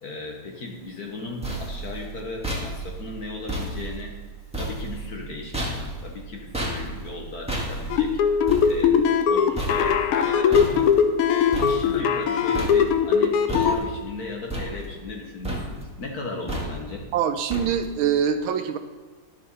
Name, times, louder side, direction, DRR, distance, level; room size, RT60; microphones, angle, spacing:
voice 1, 0.0-4.1 4.5-9.0 9.3-10.9 11.6-17.1, left 3 dB, 55° left, 1 dB, 1.3 m, -36 dB
sound 1, 1.0-12.3 12.5-13.1 13.5-14.1 14.5-15.2 15.4-16.0 16.5-17.0 17.5-18.0, right 1 dB, 5° right, 1.4 m, -33 dB
sound 2, 7.9-13.8, left 7 dB, 85° left, 1.6 m, -20 dB
voice 2, 17.1-18.8, right 8 dB, 75° right, 8 dB, 1.3 m, -24 dB
11.5 x 6.6 x 4.2 m, 1.4 s
omnidirectional pair, 2.4 m